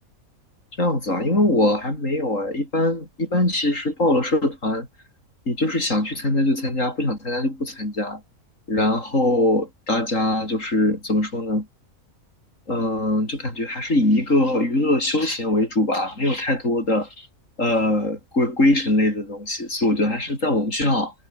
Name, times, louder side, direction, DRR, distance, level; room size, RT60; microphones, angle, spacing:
voice 1, 0.8-4.9 5.5-8.2 8.7-11.7 12.7-17.3 17.6-21.1, left 1 dB, 65° left, 8.0 m, -22 dB
omnidirectional pair, 1.4 m